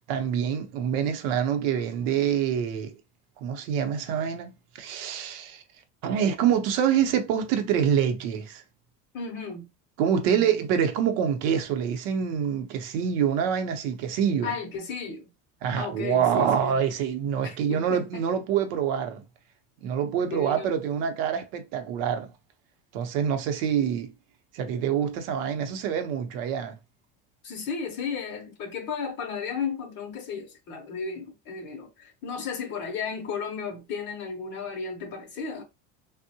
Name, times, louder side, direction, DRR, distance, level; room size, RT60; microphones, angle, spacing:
voice 1, 0.1-3.0 3.4-5.6 6.0-8.6 10.0-14.5 15.6-19.2 19.8-22.3 22.9-24.1 24.5-26.8, right 8 dB, 65° right, 0.7 m, -26 dB
voice 2, 9.1-9.7 10.2-10.6 14.4-15.3 15.8-16.8 17.4-18.0 20.2-20.8 27.4-35.6, left 5 dB, 40° left, 0.5 m, -34 dB
3.5 x 2.1 x 2.7 m
cardioid pair, 170°, 30 cm